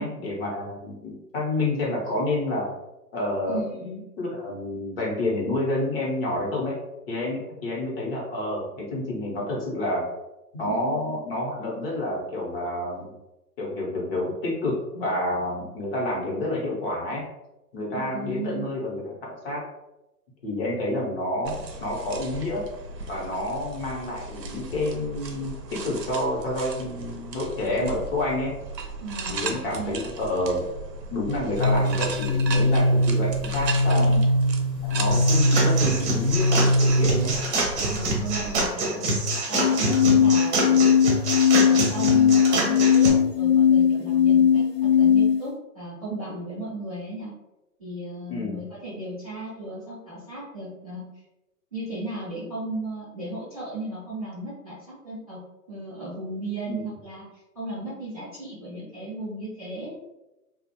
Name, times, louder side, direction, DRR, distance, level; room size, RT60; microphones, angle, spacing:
voice 1, 0.0-2.7 3.1-3.8 4.2-6.8 7.1-10.1 10.5-13.1 13.6-17.2 17.7-19.0 19.4-19.6 20.4-22.7 23.1-28.5 29.3-30.6 31.1-34.2 34.8-37.3 48.3-48.6 56.6-56.9, left 1 dB, 35° left, -3 dB, 0.8 m, -29 dB
voice 2, 3.5-4.0 10.7-11.2 17.9-18.7 29.0-30.0 33.9-34.2 37.9-39.0 39.5-40.9 41.5-44.6 44.9-47.3 47.8-51.0 51.7-55.4 55.7-57.2 57.5-60.0, right 2 dB, 25° right, -11 dB, 0.4 m, -35 dB
sound 1, 21.4-38.7, right 4 dB, 85° right, 0.6 m, -37 dB
sound 2, 31.5-37.5 39.5-45.5, left 5 dB, 85° left, 0.6 m, -20 dB
sound 3, 35.1-43.1, right 2 dB, 45° right, 0.9 m, -26 dB
2.4 x 2.0 x 2.7 m, 0.97 s
hypercardioid pair, 130°, 49 cm